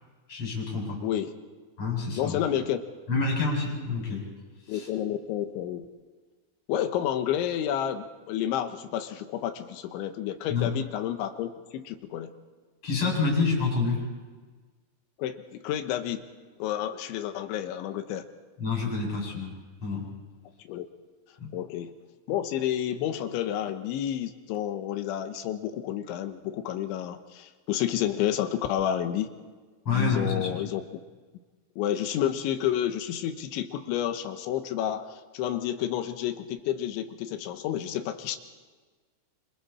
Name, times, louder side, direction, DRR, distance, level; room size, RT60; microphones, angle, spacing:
voice 1, 0.3-1.0 1.8-2.4 3.1-4.3 4.7-4.9 10.5-10.7 12.8-14.0 18.6-19.5 19.8-20.1 21.4-21.5 29.8-30.6, left 4 dB, 30° left, -2 dB, 8.3 m, -28 dB
voice 2, 2.2-2.8 4.7-5.9 6.7-12.3 15.2-16.3 16.6-18.3 20.6-20.9 21.5-21.9 22.3-29.3 29.9-30.8 31.8-35.1 35.3-38.4, left 11 dB, 75° left, 8 dB, 3.3 m, -30 dB
27.5 x 27.0 x 4.3 m, 1.4 s
omnidirectional pair, 5.8 m